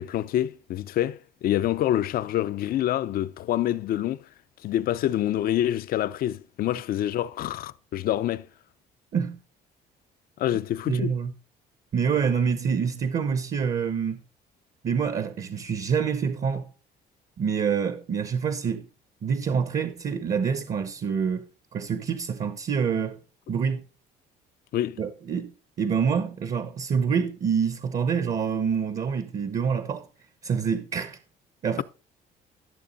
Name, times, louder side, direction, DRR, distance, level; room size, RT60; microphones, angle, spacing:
voice 1, 0.0-4.2 4.6-8.5 10.4-11.2 24.7-25.0, left 12 dB, 60° left, 0.6 m, -26 dB
voice 2, 10.9-11.3 11.9-14.2 14.8-16.7 17.4-18.9 19.2-21.4 21.7-23.2 23.5-23.8 25.0-25.5 25.8-30.1 30.4-31.2 31.6-31.8, right 6 dB, 45° right, 1.0 m, -26 dB
12.5 x 6.8 x 4.1 m
cardioid pair, 110°, 17 cm